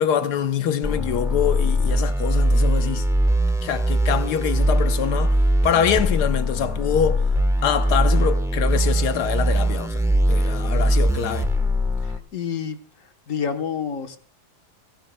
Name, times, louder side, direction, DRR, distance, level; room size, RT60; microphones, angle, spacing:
voice 1, 0.0-3.1 3.6-5.4 5.6-7.2 7.6-10.0 10.3-11.5, left 8 dB, 80° left, 1.4 m, -24 dB
sound 1, 0.8-12.2, equal, 5° right, 0.8 m, -21 dB
voice 2, 12.3-12.8 13.3-14.2, left 7 dB, 55° left, 1.4 m, -27 dB
29.5 x 11.0 x 2.2 m
omnidirectional pair, 1.7 m